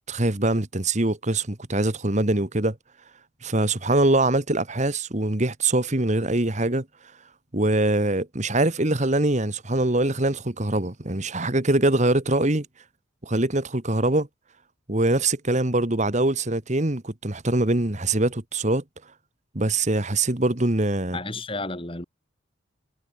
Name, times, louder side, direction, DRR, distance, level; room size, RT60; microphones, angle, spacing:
voice 1, 0.1-2.7 3.4-6.8 7.5-12.7 13.2-14.3 14.9-18.8 19.5-21.2, right 2 dB, 35° right, 1.6 m, -23 dB
voice 2, 21.1-22.1, left 2 dB, 25° left, 3.0 m, -32 dB
head